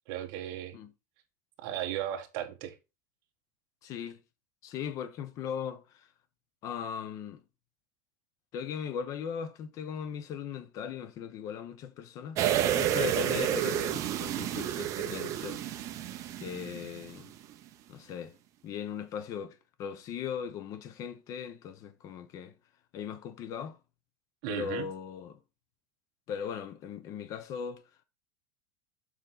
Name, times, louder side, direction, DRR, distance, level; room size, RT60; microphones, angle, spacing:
voice 1, 0.1-0.8 1.6-2.7 24.4-24.9, right 12 dB, 45° right, 1.3 m, -36 dB
voice 2, 3.8-4.2 4.6-6.1 6.6-7.4 8.5-12.4 12.7-15.6 16.4-17.3 17.9-18.3 18.6-22.5 22.9-23.8 24.5-25.4 26.3-27.8, left 7 dB, 30° left, 0.8 m, -38 dB
sound 1, 12.4-17.2 17.5-17.6, right 11 dB, 30° right, 0.7 m, -30 dB
6.8 x 4.4 x 4.0 m
supercardioid pair, 165°, 10 cm